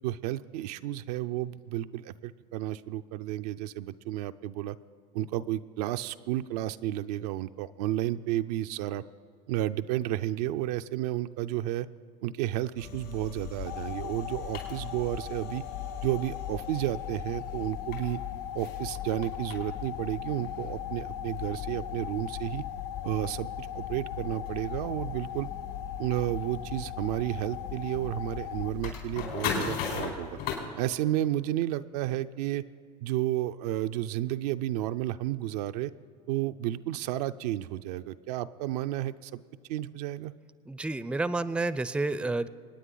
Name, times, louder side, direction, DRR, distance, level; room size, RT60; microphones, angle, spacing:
voice 1, 0.0-4.8 5.1-9.0 9.5-11.9 12.2-15.6 16.0-18.2 18.5-22.6 23.0-25.5 26.0-30.4 30.8-32.6 33.0-35.9 36.3-39.4 39.7-40.3, right 14 dB, 75° right, 10 dB, 0.5 m, -32 dB
sound 1, 12.8-30.5, left 7 dB, 75° left, 4.4 m, -39 dB
sound 2, 13.7-28.7, left 11 dB, 50° left, 0.8 m, -40 dB
voice 2, 40.7-42.5, right 2 dB, 5° right, 15 dB, 0.5 m, -30 dB
26.5 x 9.4 x 3.9 m, 2.2 s
hypercardioid pair, 90°, 20 cm